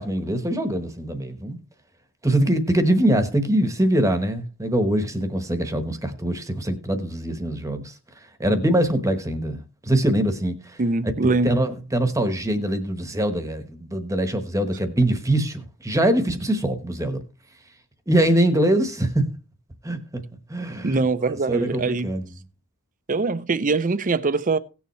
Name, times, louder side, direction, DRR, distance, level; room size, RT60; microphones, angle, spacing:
voice 1, 0.0-1.6 2.2-7.9 8.4-10.8 11.2-17.2 18.1-19.2 19.8-20.2 20.5-21.0 21.5-22.2, right 1 dB, 15° right, 1.1 m, -23 dB
voice 2, 10.8-11.5 20.8-22.1 23.1-24.6, right 3 dB, 35° right, 0.6 m, -23 dB
17.5 x 7.0 x 3.1 m
head